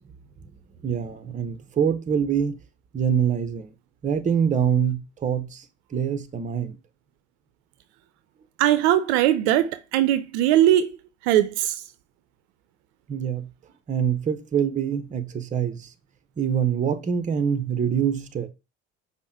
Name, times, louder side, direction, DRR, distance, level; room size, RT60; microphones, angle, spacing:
voice 1, 0.8-2.6 2.9-3.7 4.0-5.7 5.9-6.8 13.1-13.5 13.9-15.9 16.4-18.5, right 8 dB, 20° right, 0.6 m, -25 dB
voice 2, 8.6-10.9 11.2-11.8, right 12 dB, 65° right, 0.5 m, -20 dB
5.4 x 2.2 x 4.5 m
hypercardioid pair, 65°, 36 cm